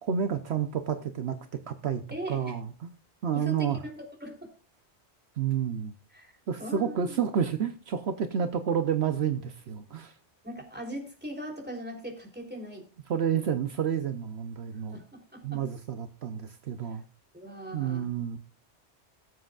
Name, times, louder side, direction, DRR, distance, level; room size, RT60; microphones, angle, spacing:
voice 1, 0.0-1.4 1.7-2.0 2.3-2.9 3.2-3.8 5.4-5.9 6.5-10.1 13.1-15.0 15.4-17.0 17.7-18.4, right 8 dB, 70° right, 9 dB, 1.0 m, -30 dB
voice 2, 2.1-2.5 3.3-4.5 6.1-6.3 6.6-7.2 10.4-12.8 13.4-13.5 14.9-15.6 16.8-17.0 17.3-18.1, equal, 10° right, 1 dB, 3.4 m, -40 dB
19.5 x 7.7 x 2.4 m, 0.34 s
omnidirectional pair, 1.2 m